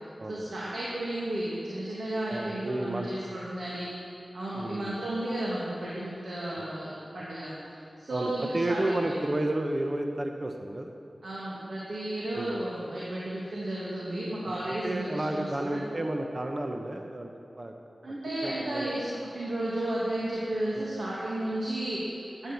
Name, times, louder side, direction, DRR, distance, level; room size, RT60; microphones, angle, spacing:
voice 1, 0.3-3.9 4.3-9.2 11.2-15.8 18.0-22.5, right 1 dB, 85° right, -7 dB, 2.4 m, -33 dB
voice 2, 2.3-3.1 4.5-5.0 6.5-6.7 8.1-10.9 12.3-12.5 14.4-17.3 17.6-17.7 18.4-18.9 20.7-20.9, right 1 dB, 45° right, 3 dB, 1.1 m, -32 dB
12.5 x 9.8 x 7.1 m, 2.5 s
cardioid pair, 50°, 0 cm